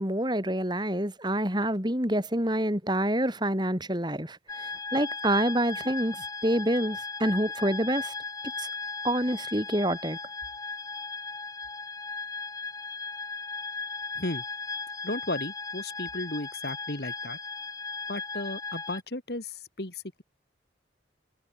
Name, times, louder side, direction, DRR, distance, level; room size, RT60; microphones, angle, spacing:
voice 1, 0.0-8.1 8.6-8.7 9.0-10.2, right 1 dB, 25° right, 5.4 m, -27 dB
sound 1, 4.5-19.0, left 4 dB, 20° left, 1.6 m, -37 dB
voice 2, 15.0-17.4 18.1-20.2, left 2 dB, 60° left, 2.4 m, -34 dB
head